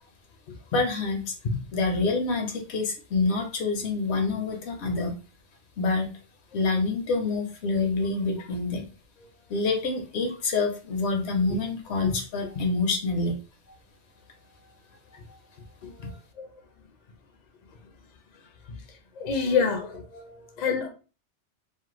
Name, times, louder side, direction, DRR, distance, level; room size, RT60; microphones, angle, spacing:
voice 1, 0.7-1.3 1.7-5.1 5.8-6.2 6.5-8.9 9.5-13.4, left 3 dB, 70° left, 0.9 m, -27 dB
voice 2, 19.2-20.9, left 5 dB, 50° left, 0.5 m, -28 dB
2.5 x 2.1 x 3.0 m
omnidirectional pair, 1.2 m